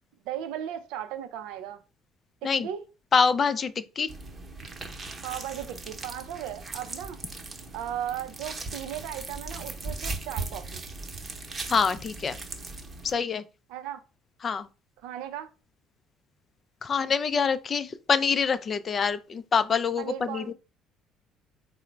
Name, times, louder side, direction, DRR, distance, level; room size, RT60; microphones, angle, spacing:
voice 1, 0.2-1.8 2.4-2.9 5.2-7.2 7.7-10.9 13.7-14.0 15.0-15.5 20.0-20.5, right 10 dB, 65° right, 0.4 m, -36 dB
voice 2, 3.1-4.1 11.7-12.4 13.0-13.4 14.4-14.7 16.8-20.5, left 5 dB, 40° left, 0.4 m, -25 dB
sound 1, 4.1-13.2, right 3 dB, 30° right, 0.8 m, -38 dB
3.7 x 2.0 x 4.3 m
hypercardioid pair, 55°, 0 cm